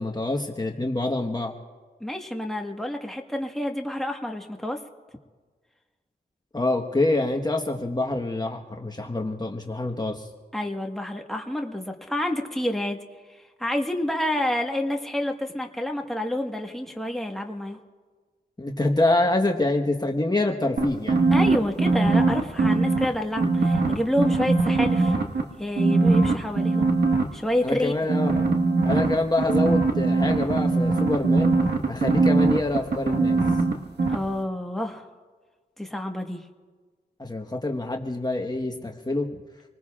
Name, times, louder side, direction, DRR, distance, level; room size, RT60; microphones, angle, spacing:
voice 1, 0.0-1.5 6.5-10.3 18.6-21.2 27.6-28.4 28.8-31.5 31.9-33.4 37.2-39.3, left 2 dB, 25° left, 2 dB, 1.3 m, -26 dB
voice 2, 2.0-4.8 10.5-13.0 13.6-17.8 21.3-25.2 25.6-26.9 27.3-27.9 34.1-35.1 35.8-36.4, left 1 dB, ahead, 2 dB, 1.6 m, -28 dB
sound 1, 20.8-23.0 23.4-25.4 25.8-27.2 28.1-33.7 34.0-34.2, right 3 dB, 70° right, 1.5 m, -21 dB
28.0 x 19.5 x 2.5 m, 1.4 s
cardioid pair, 55°, 18 cm